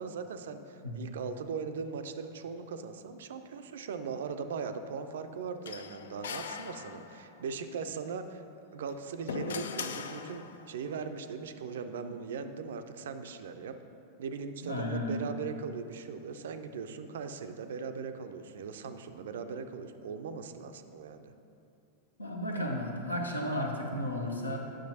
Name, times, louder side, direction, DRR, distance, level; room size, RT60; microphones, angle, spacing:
voice 1, 0.0-8.4 8.7-13.8 14.2-21.3, right 5 dB, 60° right, 9 dB, 0.4 m, -39 dB
sound 1, 5.7-7.4 8.7-10.8, left 6 dB, 65° left, 0.3 m, -40 dB
voice 2, 14.6-15.2 22.2-24.6, left 1 dB, 80° left, 1 dB, 0.8 m, -33 dB
9.9 x 6.2 x 2.7 m, 2.6 s
figure-of-eight pair, 90°, 0 cm